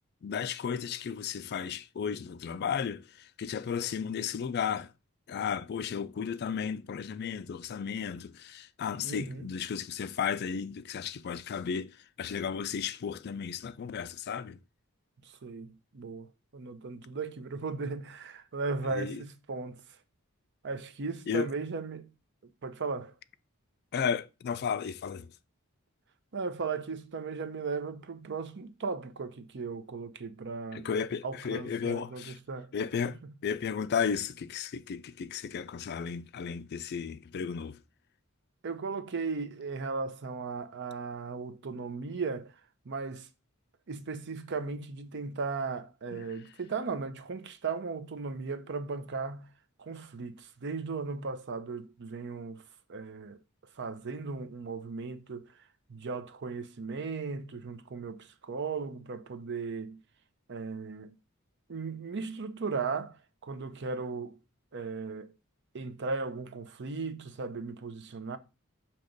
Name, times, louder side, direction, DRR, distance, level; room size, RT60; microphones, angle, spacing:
voice 1, 0.2-4.9 5.3-14.6 18.9-19.2 21.3-21.5 23.9-25.3 30.7-32.4 32.7-37.8 46.1-46.2, left 7 dB, 50° left, 0.4 m, -34 dB
voice 2, 9.0-9.5 15.2-16.3 16.5-19.8 20.6-22.1 22.4-23.1 26.3-30.9 31.2-32.7 33.2-33.3 38.6-42.5 42.9-43.3 43.9-49.5 49.8-52.6 52.9-53.4 53.8-55.5 55.9-60.0 60.5-61.1 61.7-64.4 64.7-65.3 65.7-68.4, right 4 dB, 55° right, 0.6 m, -36 dB
6.4 x 3.0 x 5.1 m
head